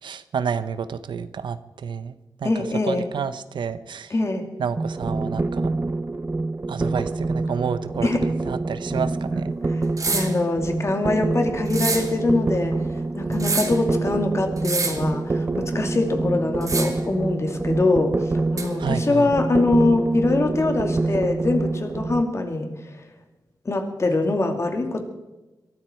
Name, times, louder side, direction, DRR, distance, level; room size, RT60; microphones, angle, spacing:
voice 1, 0.0-4.1 4.6-5.7 6.7-8.1 8.5-9.5 18.8-19.3, right 6 dB, 85° right, 13 dB, 0.8 m, -30 dB
voice 2, 2.4-3.1 4.1-4.5 8.0-8.3 10.1-22.8 23.6-25.0, left 2 dB, 35° left, 4 dB, 2.5 m, -23 dB
sound 1, 4.8-22.2, right 3 dB, 25° right, 0.7 m, -26 dB
sound 2, 10.0-10.4 11.7-12.1 13.3-13.8 14.6-15.1 16.6-17.1 18.6-18.7, right 3 dB, 45° right, 2.3 m, -26 dB
23.0 x 13.0 x 4.5 m, 1.1 s
wide cardioid pair, 110°, 8 cm